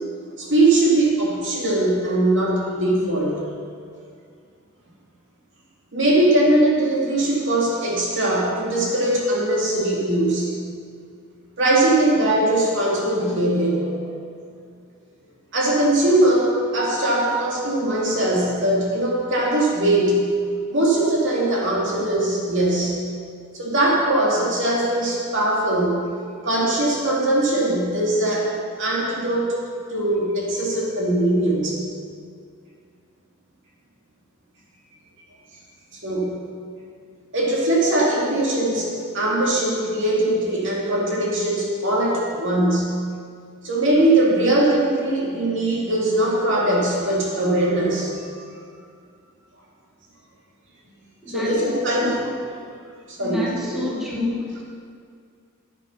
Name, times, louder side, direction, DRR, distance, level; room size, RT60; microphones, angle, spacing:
voice 1, 0.4-3.4 5.9-10.5 11.6-14.0 15.5-20.2 20.7-23.0 23.5-26.0 26.4-28.5 28.8-29.6 29.9-31.8 36.0-36.4 37.3-42.9 43.6-48.4 51.3-52.3 53.1-53.8, right 1 dB, 60° right, -4 dB, 2.4 m, -21 dB
voice 2, 51.2-51.7 51.9-52.2 53.2-54.6, left 3 dB, ahead, -5 dB, 1.5 m, -28 dB
9.8 x 9.1 x 5.7 m, 2.2 s
head